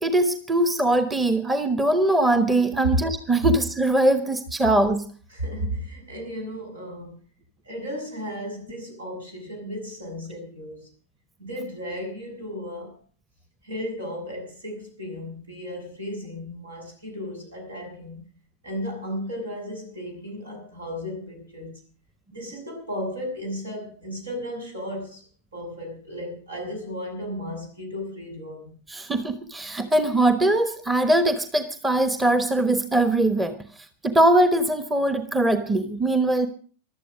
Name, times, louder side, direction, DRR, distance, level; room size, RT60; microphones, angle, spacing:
voice 1, 0.0-5.1 28.9-36.5, right 1 dB, 10° right, 11 dB, 1.2 m, -21 dB
voice 2, 5.3-7.2 7.6-10.9 11.4-13.0 13.6-18.2 18.6-21.8 22.3-25.2 25.5-28.7, equal, 75° right, 2 dB, 7.7 m, -35 dB
15.5 x 12.0 x 6.3 m, 0.42 s
figure-of-eight pair, 90°, 0 cm